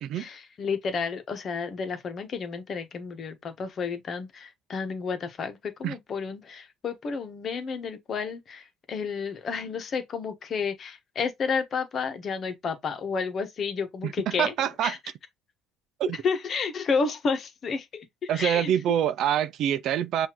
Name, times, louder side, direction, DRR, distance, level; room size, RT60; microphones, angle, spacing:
voice 1, 0.1-14.5 14.8-15.0 16.2-18.7, left 5 dB, 45° left, 1.2 m, -31 dB
voice 2, 14.0-15.0 16.0-16.2 18.3-20.3, right 10 dB, 60° right, 0.4 m, -26 dB
5.7 x 2.7 x 3.0 m
cardioid pair, 105°, 0 cm